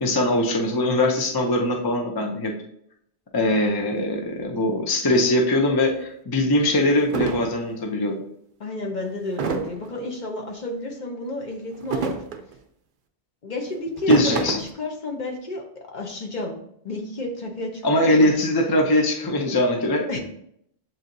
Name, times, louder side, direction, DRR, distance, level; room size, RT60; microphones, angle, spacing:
voice 1, 0.0-2.5 3.3-8.1 14.1-14.6 17.8-20.0, left 1 dB, 30° left, 1 dB, 0.4 m, -21 dB
sound 1, 5.9-6.0 6.6-6.7 7.1-7.5 9.4-9.9 11.7-12.5 13.9-14.7, right 5 dB, 60° right, 0.6 m, -27 dB
voice 2, 8.6-12.1 13.4-16.6 16.8-18.3 20.1-20.2, left 2 dB, 45° left, 1 dB, 0.8 m, -31 dB
7.4 x 2.7 x 2.6 m, 0.71 s
omnidirectional pair, 1.1 m